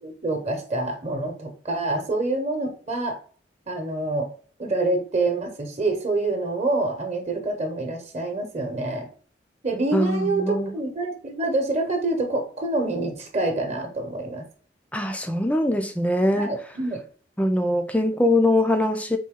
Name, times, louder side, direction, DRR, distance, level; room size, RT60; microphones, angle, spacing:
voice 1, 0.0-3.2 3.7-4.3 4.6-9.1 9.6-14.5 16.3-17.0, right 2 dB, 40° right, 1.0 m, -26 dB
voice 2, 9.9-10.7 14.9-16.6 17.4-19.2, left 1 dB, 10° left, 0.4 m, -22 dB
4.1 x 2.7 x 3.6 m
head